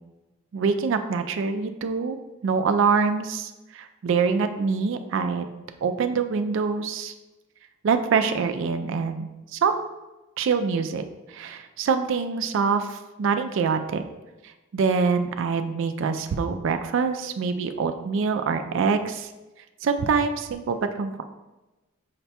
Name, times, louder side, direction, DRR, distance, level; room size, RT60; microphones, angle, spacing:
voice 1, 0.5-2.2 2.4-5.5 5.8-7.1 7.8-9.9 10.4-14.0 14.4-19.3 19.8-21.2, right 5 dB, 60° right, 8 dB, 0.3 m, -25 dB
5.7 x 2.2 x 4.1 m, 1.1 s
head